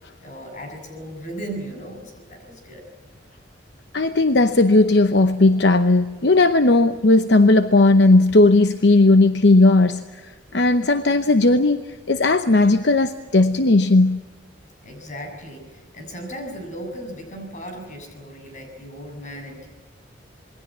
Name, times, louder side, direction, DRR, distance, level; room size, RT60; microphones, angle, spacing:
voice 1, 0.2-2.9 14.8-19.7, right 1 dB, 40° left, 4 dB, 7.1 m, -36 dB
voice 2, 3.9-14.2, left 2 dB, 65° left, 9 dB, 0.9 m, -16 dB
27.0 x 21.5 x 7.5 m, 1.3 s
head